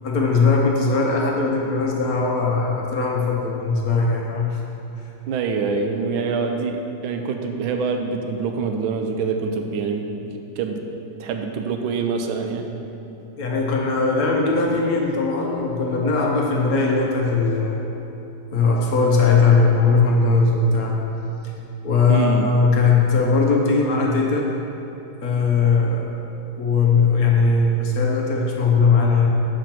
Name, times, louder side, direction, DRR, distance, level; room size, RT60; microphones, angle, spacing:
voice 1, 0.0-4.6 13.4-17.8 18.5-21.0 21.8-24.5 25.2-26.1 26.5-29.3, left 4 dB, 60° left, -1 dB, 1.0 m, -19 dB
voice 2, 5.3-10.3 10.6-10.8 11.2-12.7 22.1-22.5, right 5 dB, 90° right, 5 dB, 1.4 m, -25 dB
6.4 x 5.1 x 5.8 m, 2.9 s
omnidirectional pair, 2.2 m